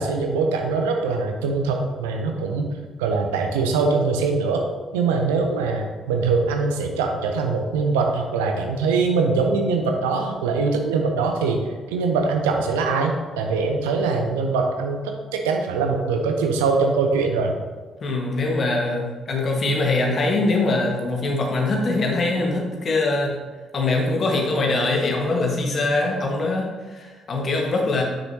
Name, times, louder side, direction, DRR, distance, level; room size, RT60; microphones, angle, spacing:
voice 1, 0.0-2.7 3.0-4.6 4.9-11.6 11.9-17.5, right 4 dB, 75° right, 3 dB, 0.7 m, -22 dB
voice 2, 18.0-23.3 23.7-28.0, left 2 dB, 50° left, 0 dB, 1.5 m, -23 dB
7.2 x 6.4 x 2.8 m, 1.3 s
figure-of-eight pair, 45°, 0 cm